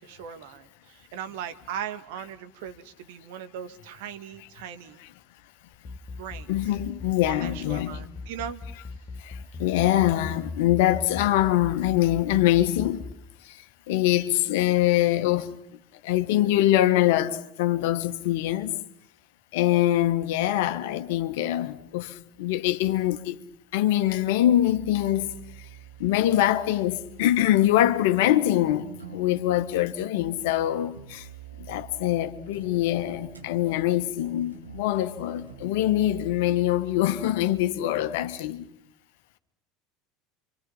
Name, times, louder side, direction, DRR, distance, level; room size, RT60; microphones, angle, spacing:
voice 1, 0.0-5.0 6.2-6.5 7.2-8.6, right 9 dB, 60° right, 1.9 m, -38 dB
sound 1, 5.7-13.1, left 3 dB, 35° left, 1.8 m, -37 dB
voice 2, 6.5-8.0 9.2-13.0 13.4-15.6 16.0-18.7 19.5-23.4 23.7-25.3 26.0-31.3 31.6-38.7, left 13 dB, 60° left, 1.6 m, -24 dB
sound 2, 24.5-38.5, right 7 dB, 80° right, 2.3 m, -46 dB
29.0 x 25.5 x 5.7 m
figure-of-eight pair, 70°, 0 cm